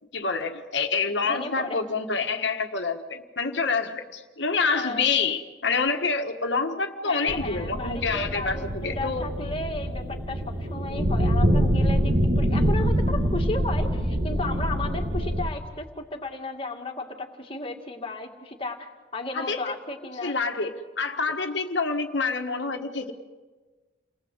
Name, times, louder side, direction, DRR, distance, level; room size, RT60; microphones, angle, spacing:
voice 1, 0.1-9.2 19.3-19.7 20.2-23.1, left 4 dB, 60° left, 5 dB, 1.5 m, -27 dB
voice 2, 1.2-1.8 4.7-5.1 7.0-20.4 21.3-21.4, left 2 dB, 30° left, 3 dB, 2.3 m, -34 dB
sound 1, 7.3-15.5, equal, 40° right, 2.5 m, -25 dB
29.5 x 20.0 x 8.0 m, 1.3 s
head